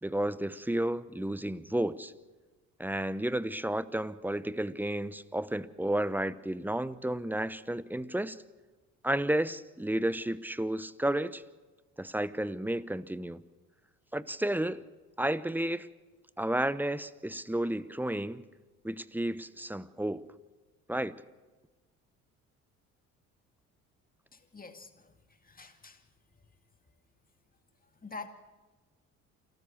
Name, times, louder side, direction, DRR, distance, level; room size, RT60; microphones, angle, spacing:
voice 1, 0.0-2.1 2.8-8.4 9.0-11.4 12.0-13.4 14.1-14.8 15.2-15.9 16.4-18.4 18.8-20.3 20.9-21.2, right 1 dB, 5° right, 17 dB, 0.9 m, -32 dB
voice 2, 24.3-26.1 27.8-28.3, left 4 dB, 25° left, 7 dB, 2.4 m, -47 dB
28.0 x 13.5 x 7.2 m, 1.3 s
hypercardioid pair, 60°, 37 cm